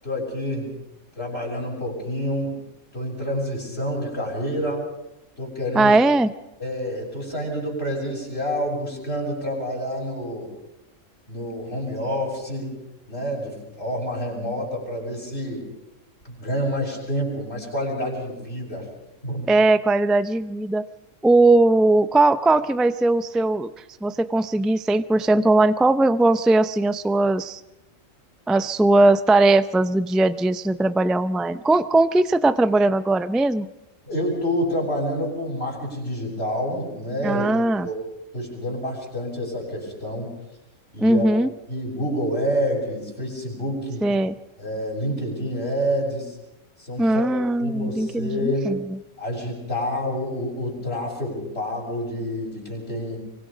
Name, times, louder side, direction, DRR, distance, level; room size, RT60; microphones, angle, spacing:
voice 1, 0.0-0.7 1.2-2.6 2.9-4.8 5.4-6.0 6.6-10.5 11.3-12.8 13.1-15.7 16.3-18.9 19.2-19.5 34.1-37.5 37.8-38.0 38.3-40.3 40.9-41.3 41.7-44.1 44.6-46.4 46.8-47.3 47.6-48.7 49.2-53.2, equal, 50° left, -2 dB, 7.5 m, -28 dB
voice 2, 5.7-6.3 19.5-20.9 21.2-23.7 24.0-27.6 28.5-33.7 37.2-37.9 41.0-41.5 44.0-44.4 47.0-48.8, right 2 dB, ahead, 12 dB, 0.4 m, -19 dB
24.5 x 24.5 x 5.2 m, 0.91 s
omnidirectional pair, 1.3 m